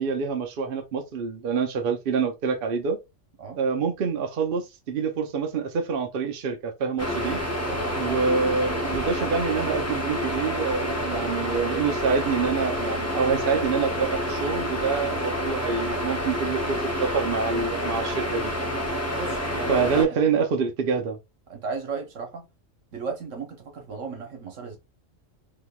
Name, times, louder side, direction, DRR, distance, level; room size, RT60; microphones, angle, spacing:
voice 1, 0.0-3.0 3.5-7.4 8.0-18.5 19.7-21.2, right 5 dB, 55° right, 0.8 m, -26 dB
sound 1, 7.0-20.1, equal, 15° left, 0.6 m, -28 dB
voice 2, 7.6-8.2 19.2-20.2 21.5-22.4 22.9-24.8, right 5 dB, 75° right, 1.4 m, -35 dB
3.7 x 2.9 x 2.3 m
omnidirectional pair, 1.3 m